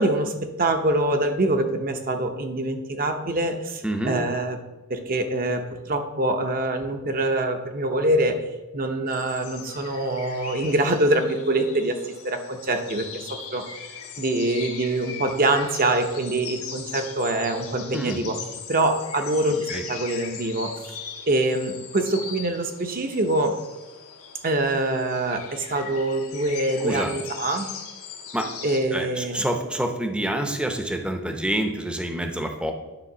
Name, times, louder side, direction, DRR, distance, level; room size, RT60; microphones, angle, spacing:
voice 1, 0.0-4.6 4.9-8.4 8.7-13.7 14.2-18.4 18.7-20.8 21.3-23.6 24.4-27.7 28.6-29.4, right 2 dB, 40° right, 6 dB, 0.7 m, -24 dB
voice 2, 3.8-4.2 17.9-18.2 19.7-19.8 26.8-27.1 28.3-28.5 28.9-32.7, right 1 dB, 5° right, 5 dB, 0.7 m, -27 dB
sound 1, 9.1-28.8, left 6 dB, 85° left, 1.4 m, -40 dB
9.9 x 3.6 x 6.0 m, 1.1 s
head